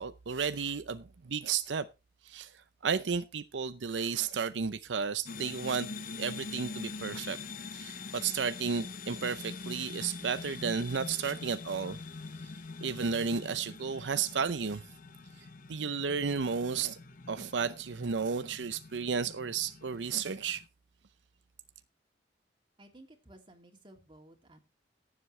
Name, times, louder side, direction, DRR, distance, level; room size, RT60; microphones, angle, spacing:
voice 1, 0.0-1.8 2.3-2.5 2.8-5.9 6.2-7.4 7.7-12.0 12.8-14.8 15.7-17.0 17.3-20.6, right 6 dB, 90° right, 0.6 m, -33 dB
sound 1, 5.3-20.7, left 4 dB, 50° left, 0.8 m, -44 dB
voice 2, 22.8-24.6, right 1 dB, 30° right, 2.7 m, -55 dB
17.5 x 7.5 x 3.2 m
head